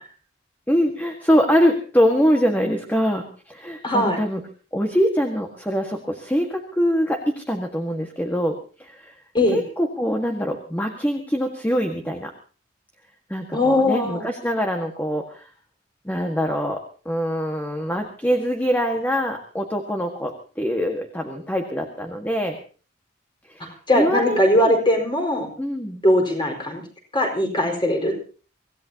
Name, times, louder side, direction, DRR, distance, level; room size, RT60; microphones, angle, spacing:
voice 1, 0.7-4.4 4.7-9.1 9.5-12.3 13.3-15.5 16.0-22.6 23.5-24.8 25.6-26.0, equal, 10° left, 3 dB, 1.6 m, -24 dB
voice 2, 3.8-4.2 9.3-9.6 13.5-14.2 23.9-25.5 26.0-26.8 27.1-28.1, left 1 dB, 25° left, 2 dB, 4.6 m, -20 dB
25.5 x 16.0 x 2.9 m, 0.37 s
head